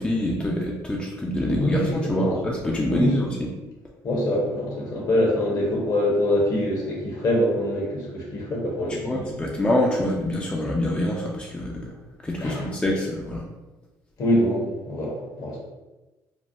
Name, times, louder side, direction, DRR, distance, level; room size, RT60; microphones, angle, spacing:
voice 1, 0.0-3.5 9.0-12.0 12.2-13.4, left 1 dB, 15° left, -2 dB, 0.5 m, -25 dB
voice 2, 1.4-2.4 2.9-3.1 4.0-9.3 12.4-12.7 14.2-15.6, left 1 dB, 55° left, -2 dB, 1.1 m, -24 dB
3.3 x 2.1 x 2.5 m, 1.1 s
cardioid pair, 85°, 7 cm